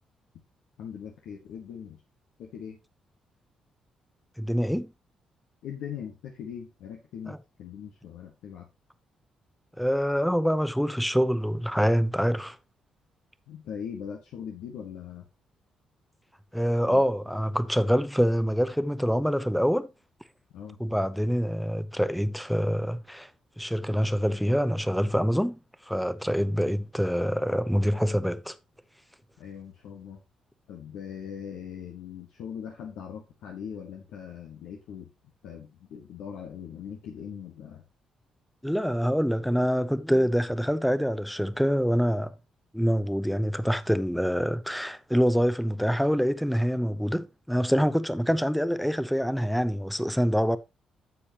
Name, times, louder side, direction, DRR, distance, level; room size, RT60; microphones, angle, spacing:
voice 1, 0.8-2.0 2.4-2.8 5.6-8.7 13.5-15.2 16.9-17.0 20.5-20.8 29.4-30.2 30.7-35.1 35.4-37.8, left 8 dB, 75° left, 1.3 m, -40 dB
voice 2, 4.4-4.9 7.3-7.4 9.8-12.6 16.5-19.9 20.8-23.3 23.6-25.6 25.9-28.6 38.6-42.3 42.7-50.6, equal, ahead, 0.8 m, -25 dB
9.8 x 7.0 x 2.9 m
hypercardioid pair, 50°, 2 cm